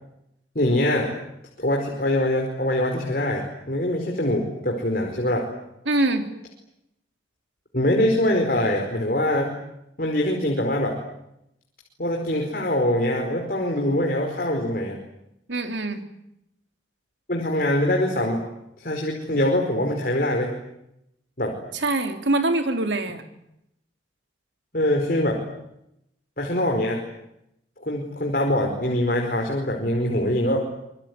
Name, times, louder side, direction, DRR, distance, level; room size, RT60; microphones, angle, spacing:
voice 1, 0.5-1.1 1.6-5.4 7.7-9.5 10.0-11.0 12.0-15.0 17.3-18.4 18.8-20.5 21.4-21.6 24.7-25.4 26.4-27.0 27.8-30.6, left 1 dB, 50° left, 1 dB, 4.9 m, -23 dB
voice 2, 5.9-6.2 15.5-16.0 21.7-23.2, right 2 dB, 75° right, 6 dB, 3.7 m, -24 dB
27.0 x 22.5 x 9.7 m, 0.82 s
head